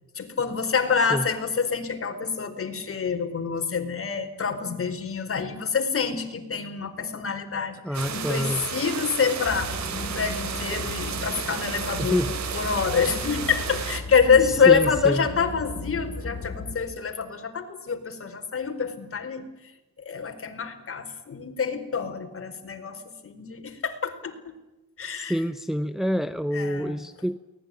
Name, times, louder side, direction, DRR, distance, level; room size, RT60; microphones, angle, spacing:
voice 1, 0.2-7.8 8.1-19.5 20.0-23.0 23.2-24.5 25.0-25.3 26.5-26.9, left 6 dB, 50° left, 6 dB, 4.7 m, -26 dB
voice 2, 7.8-8.7 12.0-12.3 14.4-15.3 25.1-27.4, equal, ahead, 10 dB, 1.0 m, -27 dB
sound 1, 7.9-14.0, right 7 dB, 70° right, 3.5 m, -33 dB
sound 2, 9.4-16.7, left 2 dB, 15° left, 6.6 m, -36 dB
23.5 x 19.5 x 9.9 m, 1.0 s
cardioid pair, 110°, 29 cm